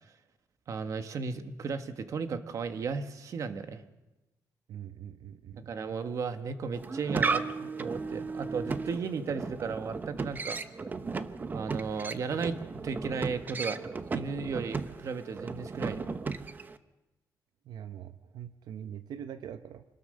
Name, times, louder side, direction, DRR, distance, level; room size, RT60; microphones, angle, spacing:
voice 1, 0.7-3.8 5.6-10.6 11.5-13.8 14.1-16.1, right 5 dB, 50° right, 8 dB, 1.4 m, -35 dB
voice 2, 4.7-5.7 17.7-19.8, right 9 dB, 90° right, 10 dB, 0.9 m, -43 dB
sound 1, 6.7-16.8, right 4 dB, 25° right, 0.8 m, -35 dB
26.0 x 19.5 x 6.5 m, 1.1 s
wide cardioid pair, 170°, 7 cm